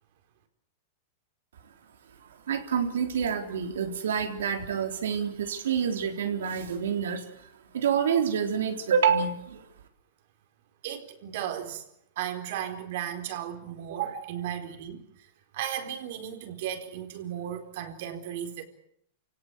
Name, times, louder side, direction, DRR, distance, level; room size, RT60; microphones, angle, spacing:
voice 1, 2.5-7.3 7.7-9.7, right 7 dB, 90° right, 5 dB, 3.8 m, -27 dB
voice 2, 10.8-11.8 12.2-15.0 15.5-18.7, right 10 dB, 60° right, 6 dB, 4.3 m, -35 dB
28.5 x 17.5 x 8.3 m, 0.72 s
supercardioid pair, 145°, 0 cm